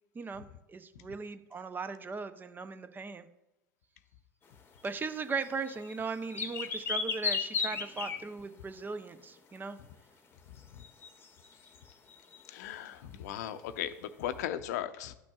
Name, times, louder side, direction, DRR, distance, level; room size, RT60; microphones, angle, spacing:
voice 1, 0.1-3.3 4.8-9.8, right 4 dB, 20° right, 11 dB, 0.7 m, -38 dB
sound 1, 4.9-5.0 5.4-8.4 10.8-12.5, left 5 dB, 25° left, 1.0 m, -35 dB
voice 2, 12.5-15.2, left 11 dB, 65° left, 11 dB, 0.6 m, -37 dB
12.5 x 6.1 x 2.4 m, 0.94 s
hypercardioid pair, 80°, 10 cm